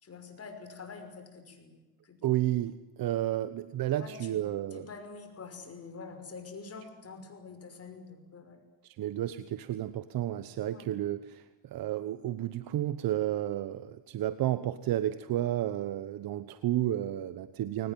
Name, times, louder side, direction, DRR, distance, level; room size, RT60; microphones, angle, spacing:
voice 1, 0.0-2.2 4.0-4.4 4.7-8.6 10.7-10.9, left 4 dB, 35° left, 7 dB, 5.6 m, -46 dB
voice 2, 2.2-4.9 8.8-17.9, right 13 dB, 60° right, 13 dB, 1.1 m, -32 dB
23.0 x 19.5 x 9.3 m, 1.1 s
cardioid pair, 100°, 40 cm